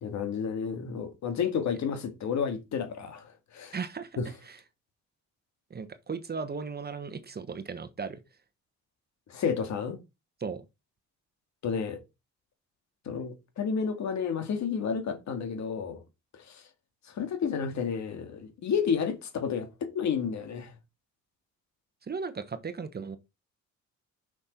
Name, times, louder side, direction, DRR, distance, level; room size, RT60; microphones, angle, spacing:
voice 1, 0.0-3.8 4.2-4.3 9.3-10.0 11.6-12.0 13.1-16.0 16.3-16.6 17.1-20.7, left 6 dB, 65° left, 2.1 m, -31 dB
voice 2, 3.7-4.1 5.7-8.2 10.4-10.6 22.1-23.2, right 5 dB, 30° right, 1.1 m, -36 dB
6.3 x 6.1 x 4.3 m
cardioid pair, 90°, 30 cm